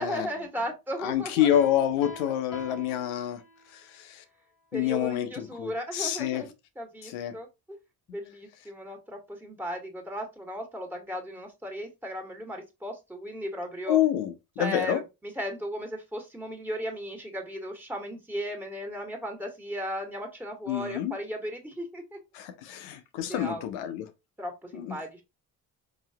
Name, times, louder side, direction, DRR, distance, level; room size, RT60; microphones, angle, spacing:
voice 1, 0.0-1.7 4.7-6.5 6.7-7.8 8.1-14.0 14.6-22.2 22.7-22.8 23.3-23.6 24.4-25.2, equal, 5° right, 1.5 m, -36 dB
voice 2, 1.0-3.4 3.7-4.2 4.7-6.4 7.0-7.4 13.9-15.0 20.7-21.1 22.3-24.1 24.7-24.9, left 11 dB, 75° left, 0.8 m, -28 dB
Piano, 1.5-3.8, left 2 dB, 40° left, 1.1 m, -44 dB
4.7 x 2.9 x 2.8 m
hypercardioid pair, 45°, 49 cm